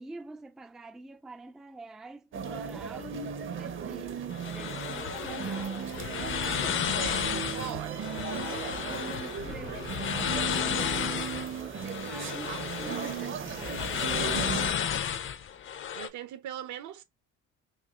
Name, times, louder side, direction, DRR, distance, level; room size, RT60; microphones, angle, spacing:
voice 1, 0.0-4.2 4.5-5.8 8.9-15.2, right 2 dB, ahead, 0.3 m, -47 dB
sound 1, 2.3-14.7, right 7 dB, 40° right, 0.7 m, -36 dB
sound 2, 4.3-16.1, left 8 dB, 40° left, 0.6 m, -33 dB
sound 3, 4.9-10.9, left 7 dB, 85° left, 1.2 m, -43 dB
voice 2, 6.4-8.1 15.9-17.0, right 10 dB, 75° right, 0.9 m, -40 dB
5.8 x 2.4 x 2.4 m
cardioid pair, 130°, 30 cm